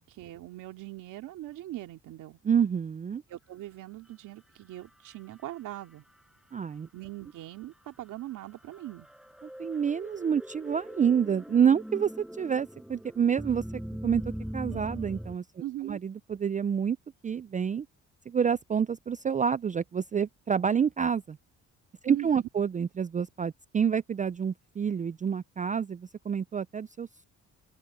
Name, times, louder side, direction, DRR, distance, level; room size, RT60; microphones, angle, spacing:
voice 1, 0.1-2.4 3.3-6.0 6.9-9.1 15.6-16.0 22.1-22.3, right 15 dB, 85° right, 2.8 m, -41 dB
voice 2, 2.4-3.2 6.5-6.9 9.6-12.1 12.4-13.6 14.0-14.2 14.5-15.4 15.8-17.0 17.2-17.9 18.3-21.4 22.0-27.3, right 7 dB, 25° right, 0.4 m, -28 dB
sound 1, 4.7-6.2 6.6-6.7 7.9-15.4, equal, ahead, 6.0 m, -41 dB
open air
cardioid pair, 90°, 30 cm